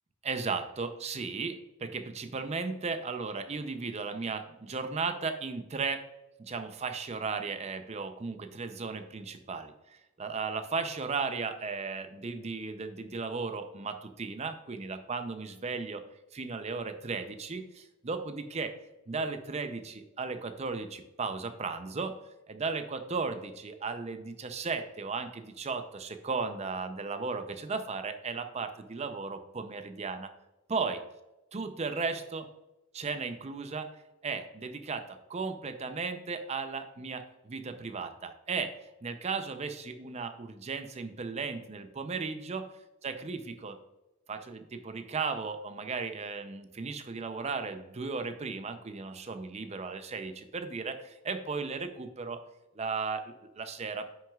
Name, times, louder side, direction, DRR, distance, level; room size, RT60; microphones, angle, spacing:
voice 1, 0.2-6.0 6.4-16.0 16.3-18.7 19.1-22.2 22.5-30.3 30.7-31.0 31.5-32.5 32.9-33.9 34.2-42.7 43.0-43.8 44.3-52.4 52.8-54.0, right 4 dB, 30° right, 8 dB, 0.5 m, -35 dB
9.5 x 6.2 x 2.3 m, 0.96 s
head